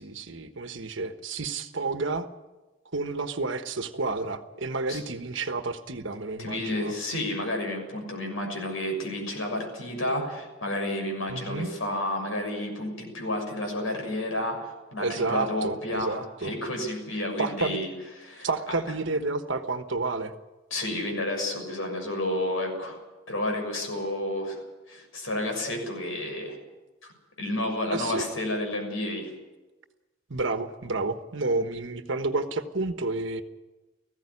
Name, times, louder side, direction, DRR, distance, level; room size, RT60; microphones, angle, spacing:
voice 1, 0.0-2.3 2.9-6.9 11.3-11.7 15.0-16.5 17.4-17.8 18.4-20.3 27.9-28.2 30.3-33.4, right 3 dB, 65° right, 8 dB, 1.3 m, -30 dB
voice 2, 6.4-17.9 18.2-18.8 20.7-23.0 23.3-24.6 24.9-26.6 27.0-27.1 27.4-29.3, left 1 dB, 75° left, 3 dB, 6.6 m, -31 dB
19.0 x 15.5 x 9.8 m, 1.1 s
head